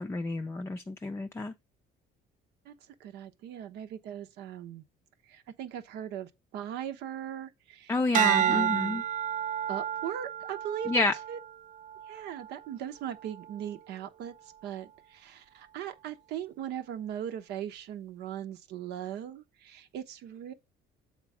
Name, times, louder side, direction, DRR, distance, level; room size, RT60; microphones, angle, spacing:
voice 1, 0.0-1.5 7.9-9.0 10.9-11.1, left 2 dB, 15° left, 0.4 m, -29 dB
voice 2, 3.0-4.8 5.3-9.0 9.7-11.4 12.1-14.3 14.6-20.5, right 10 dB, 80° right, 0.9 m, -39 dB
sound 1, 8.1-12.6 13.2-13.6, right 10 dB, 50° right, 0.4 m, -30 dB
7.5 x 3.8 x 4.9 m
cardioid pair, 110°, 17 cm